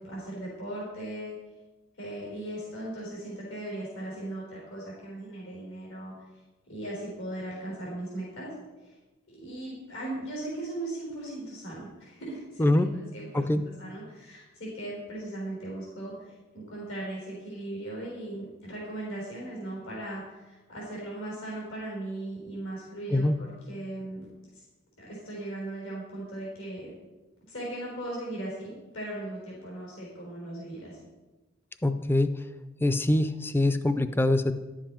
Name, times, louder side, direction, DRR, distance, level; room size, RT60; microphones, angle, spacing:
voice 1, 0.0-1.3 2.0-6.1 6.7-8.5 8.8-8.9 9.3-24.3 24.5-24.6 25.0-26.9 27.5-31.0, right 1 dB, 85° left, -4 dB, 3.9 m, -38 dB
voice 2, 12.6-12.9 13.3-13.6 23.1-23.3 31.8-32.4 32.8-34.5, left 1 dB, 10° left, 11 dB, 0.4 m, -24 dB
11.0 x 7.4 x 4.4 m, 1.2 s
head